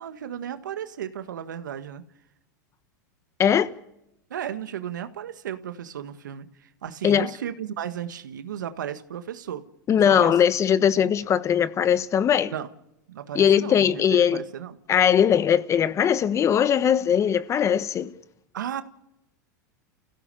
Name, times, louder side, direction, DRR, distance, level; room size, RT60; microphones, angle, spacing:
voice 1, 0.0-2.0 4.3-9.6 10.1-10.4 12.5-12.7 13.1-14.8 18.5-18.8, right 9 dB, 90° right, 1.7 m, -34 dB
voice 2, 3.4-3.7 7.0-7.3 9.9-12.5 13.3-14.4 14.9-18.1, left 8 dB, 30° left, 1.2 m, -20 dB
29.5 x 16.5 x 6.9 m
hypercardioid pair, 110°, 10 cm